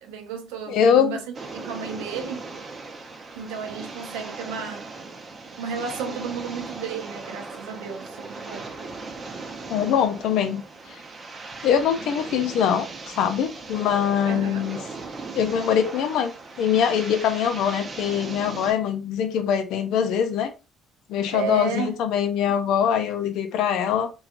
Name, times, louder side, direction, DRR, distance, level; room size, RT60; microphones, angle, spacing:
voice 1, 0.0-2.5 3.4-4.9 5.6-8.7 14.2-14.7 21.3-22.0, right 6 dB, 90° right, 0.6 m, -33 dB
voice 2, 0.7-1.2 9.7-10.6 10.9-11.0 11.6-14.8 15.3-20.5 21.1-24.1, left 8 dB, 70° left, 0.5 m, -23 dB
sound 1, 1.3-18.7, right 3 dB, 40° right, 0.6 m, -38 dB
2.8 x 2.2 x 2.4 m
supercardioid pair, 75°, 0 cm